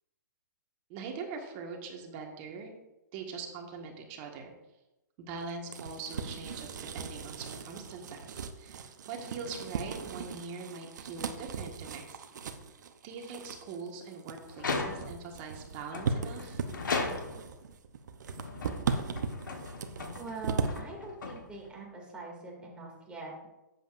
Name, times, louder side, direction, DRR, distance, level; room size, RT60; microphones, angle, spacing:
voice 1, 0.9-2.7 3.1-4.5 5.2-12.2 13.0-16.6, right 4 dB, 35° right, 2 dB, 1.7 m, -42 dB
sound 1, 5.4-20.8, right 5 dB, 65° right, 0.8 m, -38 dB
sound 2, 14.5-15.3 15.9-17.6 18.3-21.8, left 3 dB, 80° left, 1.5 m, -37 dB
voice 2, 20.1-23.5, right 3 dB, 10° right, -2 dB, 2.4 m, -43 dB
10.0 x 7.9 x 2.6 m, 0.98 s
hypercardioid pair, 135°, 10 cm